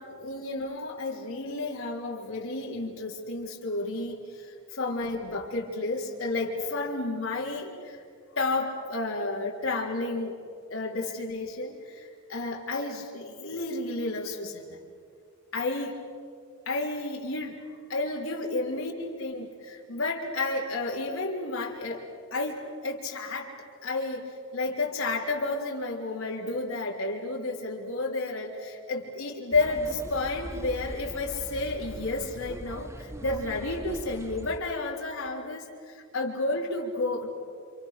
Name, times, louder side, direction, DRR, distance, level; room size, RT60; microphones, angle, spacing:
voice 1, 0.0-8.0 8.3-10.4 10.7-14.8 15.5-16.0 16.7-17.6 17.9-22.0 22.3-23.5 23.8-37.3, left 2 dB, 75° left, -2 dB, 3.7 m, -31 dB
sound 1, 29.5-34.6, right 1 dB, 15° right, 1.2 m, -41 dB
28.5 x 28.5 x 6.7 m, 2.3 s
head